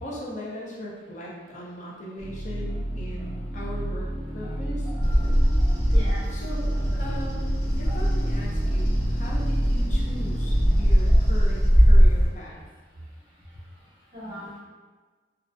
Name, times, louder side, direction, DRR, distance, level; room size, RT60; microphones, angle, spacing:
voice 1, 0.0-4.1 4.3-4.9 5.9-6.7 7.0-12.7, equal, 40° left, -4 dB, 0.5 m, -39 dB
sound 1, 2.2-12.0, right 1 dB, 80° right, 0.6 m, -29 dB
Bird vocalization bird call bird song, 5.0-12.3, equal, 60° left, 1.1 m, -21 dB
voice 2, 5.6-6.2 7.9-8.0 10.7-10.8 14.1-14.6, left 1 dB, 25° right, -9 dB, 0.7 m, -40 dB
2.4 x 2.1 x 2.5 m, 1.4 s
head